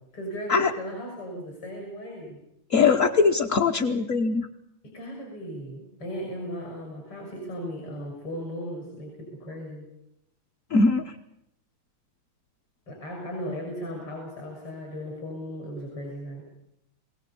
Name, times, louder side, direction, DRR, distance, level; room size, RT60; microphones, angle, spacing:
voice 1, 0.1-2.4 4.8-9.9 12.9-16.4, equal, 75° left, 1 dB, 7.2 m, -36 dB
voice 2, 2.7-4.5 10.7-11.1, left 4 dB, 50° left, 1 dB, 1.0 m, -21 dB
22.5 x 17.5 x 8.5 m, 0.80 s
omnidirectional pair, 2.4 m